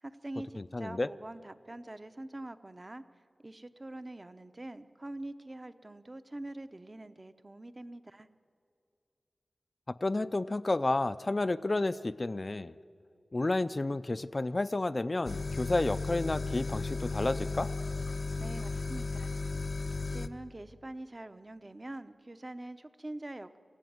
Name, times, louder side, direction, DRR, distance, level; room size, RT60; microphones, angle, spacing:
voice 1, 0.0-3.0 3.4-8.3 18.4-19.3 20.0-23.6, right 1 dB, 30° right, 11 dB, 0.9 m, -44 dB
voice 2, 0.6-1.1 9.9-12.7 13.3-17.7, left 2 dB, 40° left, 13 dB, 0.5 m, -31 dB
sound 1, 15.2-20.3, left 3 dB, 70° left, 0.8 m, -35 dB
25.5 x 16.0 x 9.4 m, 2.4 s
wide cardioid pair, 80°, 0 cm